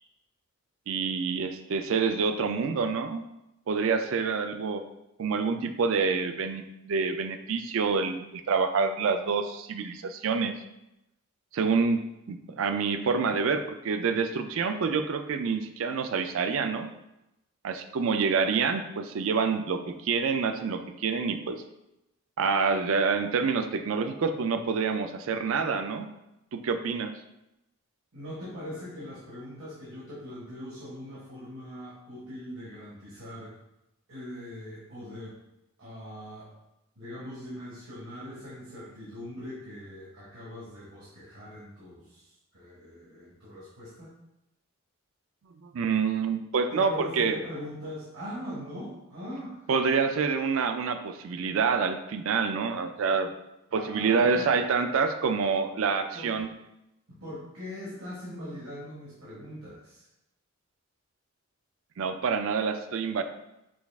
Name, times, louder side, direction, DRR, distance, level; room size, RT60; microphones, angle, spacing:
voice 1, 0.9-3.2 3.7-4.8 5.2-10.5 11.5-16.9 17.6-21.6 22.4-26.1 26.5-27.1 45.6-47.4 49.7-53.3 53.7-56.5 62.0-63.2, right 5 dB, 70° right, 8 dB, 0.4 m, -27 dB
voice 2, 28.1-33.5 34.1-35.4 35.8-36.5 37.0-44.1 46.7-50.1 53.7-54.5 56.1-56.4 57.1-60.0, equal, 85° right, -9 dB, 1.6 m, -41 dB
6.2 x 2.4 x 3.4 m, 0.89 s
head